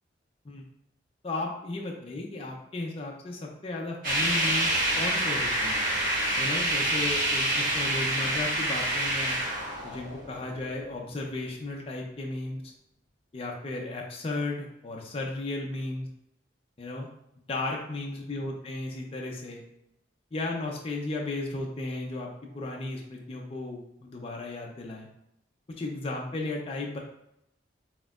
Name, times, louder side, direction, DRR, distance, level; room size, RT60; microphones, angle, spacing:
voice 1, 1.2-5.8 6.4-9.4 9.8-12.6 13.3-16.1 16.8-17.1 17.5-19.6 20.3-22.3 22.5-25.1 25.8-27.0, left 2 dB, 30° left, -1 dB, 0.4 m, -35 dB
sound 1, 4.0-10.7, right 1 dB, 50° right, 1.5 m, -27 dB
4.2 x 3.6 x 2.3 m, 0.80 s
head